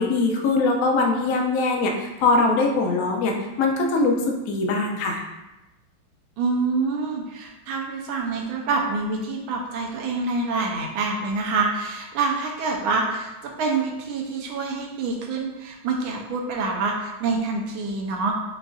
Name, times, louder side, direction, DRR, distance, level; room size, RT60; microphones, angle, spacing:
voice 1, 0.0-5.2, left 3 dB, 85° left, 1 dB, 0.7 m, -22 dB
voice 2, 6.4-18.3, right 4 dB, 75° right, 0 dB, 1.4 m, -26 dB
6.6 x 2.5 x 2.4 m, 1.0 s
omnidirectional pair, 2.3 m